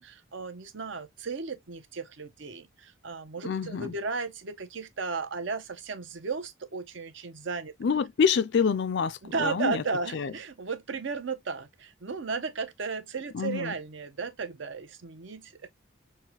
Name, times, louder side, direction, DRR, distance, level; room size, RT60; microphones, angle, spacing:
voice 1, 0.0-7.7 9.2-15.7, right 4 dB, 60° right, 0.7 m, -35 dB
voice 2, 3.4-3.9 7.8-9.8 10.1-10.3 13.3-13.7, left 6 dB, 55° left, 0.4 m, -27 dB
6.4 x 2.2 x 2.8 m
head